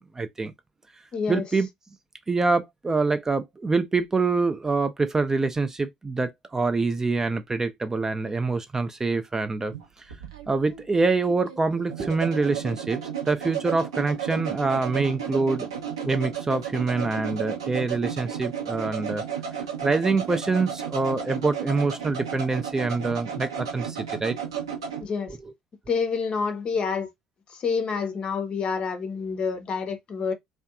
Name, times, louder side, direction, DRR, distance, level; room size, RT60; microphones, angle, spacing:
voice 1, 0.2-0.5 1.3-1.7 2.3-10.1 10.5-15.7 16.1-19.2 19.8-24.4, right 3 dB, 20° right, 0.3 m, -25 dB
voice 2, 1.1-1.4 25.0-25.4 25.9-27.1 27.5-30.3, left 5 dB, 40° left, 0.6 m, -28 dB
sound 1, 9.7-25.1, right 8 dB, 75° right, 0.6 m, -33 dB
2.6 x 2.2 x 2.3 m
figure-of-eight pair, 60°, 3 cm